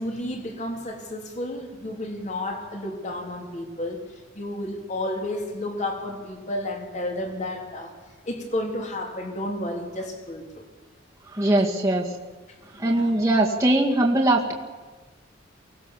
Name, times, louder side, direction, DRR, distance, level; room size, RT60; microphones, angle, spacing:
voice 1, 0.0-7.9 8.2-10.6 12.7-13.1, left 1 dB, 35° left, 2 dB, 3.3 m, -32 dB
voice 2, 11.3-12.1 12.7-14.5, right 1 dB, 15° right, -2 dB, 2.0 m, -21 dB
24.0 x 18.0 x 7.2 m, 1.3 s
head